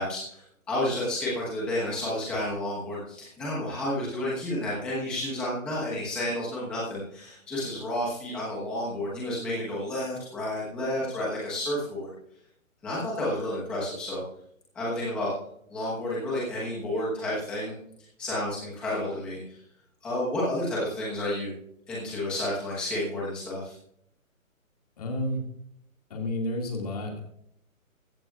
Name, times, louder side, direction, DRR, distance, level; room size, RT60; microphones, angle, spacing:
voice 1, 0.0-12.1 12.8-14.2 14.7-15.3 15.7-17.7 18.2-19.6 20.0-21.5 21.9-23.7, left 1 dB, 5° left, -7 dB, 1.1 m, -31 dB
voice 2, 25.0-25.4 26.1-27.2, left 1 dB, 25° left, 2 dB, 2.2 m, -30 dB
15.5 x 14.0 x 2.4 m, 0.71 s
hypercardioid pair, 180°, 42 cm